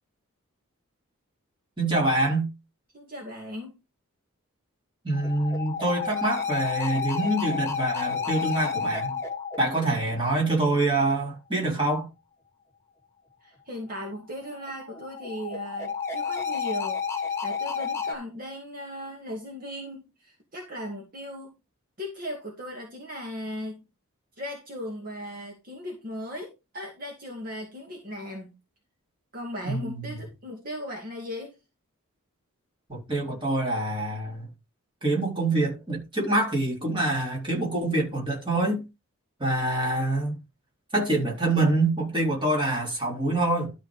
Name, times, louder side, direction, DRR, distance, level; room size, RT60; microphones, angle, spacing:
voice 1, 1.8-2.5 5.0-9.2 9.6-12.1 29.6-30.1 32.9-34.5 35.0-38.9 39.4-40.4 40.9-43.7, right 2 dB, 20° right, 3.8 m, -25 dB
voice 2, 2.9-3.8 13.4-21.5 22.0-23.8 24.4-28.5 29.3-31.6, equal, 40° right, 2.2 m, -37 dB
sound 1, 5.1-10.8 14.3-18.1, left 6 dB, 10° left, 1.9 m, -31 dB
12.5 x 4.6 x 4.9 m
head